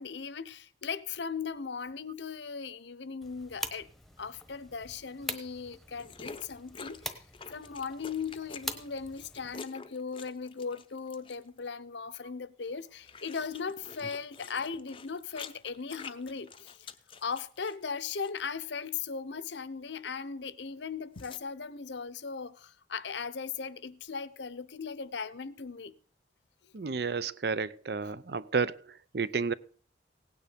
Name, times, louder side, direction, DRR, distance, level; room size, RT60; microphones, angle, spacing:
voice 1, 0.0-3.9 4.2-7.2 7.5-16.9 17.2-26.0, left 5 dB, 70° left, 0.8 m, -38 dB
sound 1, 3.2-9.6, left 1 dB, ahead, 1.1 m, -43 dB
sound 2, 6.0-11.6 12.6-17.9 18.2-18.5 21.1-21.4, left 5 dB, 25° left, 0.6 m, -48 dB
voice 2, 26.7-29.5, right 5 dB, 55° right, 0.6 m, -31 dB
17.5 x 9.4 x 5.1 m
head